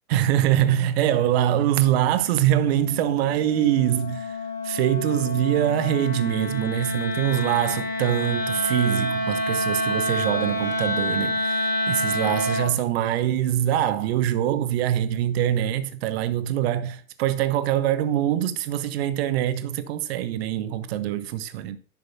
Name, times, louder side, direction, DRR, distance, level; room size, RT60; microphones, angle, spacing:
voice 1, 0.1-4.4 4.6-21.8, right 11 dB, 50° right, 1.0 m, -24 dB
Wind instrument woodwind instrument, 1.3-12.8, left 1 dB, 5° right, 2.5 m, -28 dB
11.0 x 6.4 x 2.7 m
figure-of-eight pair, 95°, 40 cm